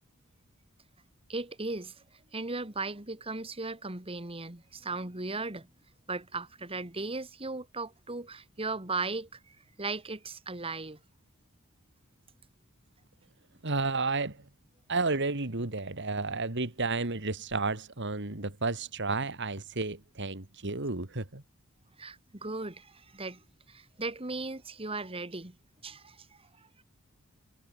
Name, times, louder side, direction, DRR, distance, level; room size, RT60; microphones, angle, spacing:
voice 1, 1.3-2.0 2.3-5.7 6.1-11.0 22.0-25.6 25.8-26.8, right 3 dB, 25° right, 2.1 m, -37 dB
voice 2, 13.6-14.4 14.9-21.4, right 3 dB, 60° right, 2.5 m, -32 dB
head